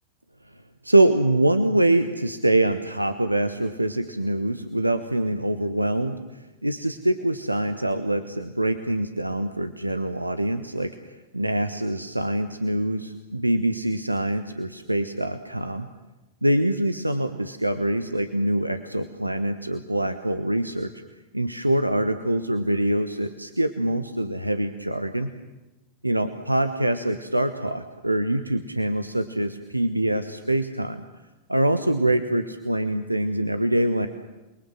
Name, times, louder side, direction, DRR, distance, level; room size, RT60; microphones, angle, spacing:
voice 1, 0.8-11.0 11.3-15.9 16.4-20.9 21.3-25.3 26.0-31.0 31.5-34.1, right 1 dB, 85° right, 9 dB, 1.2 m, -24 dB
28.5 x 22.5 x 7.8 m, 1.1 s
figure-of-eight pair, 90°, 0 cm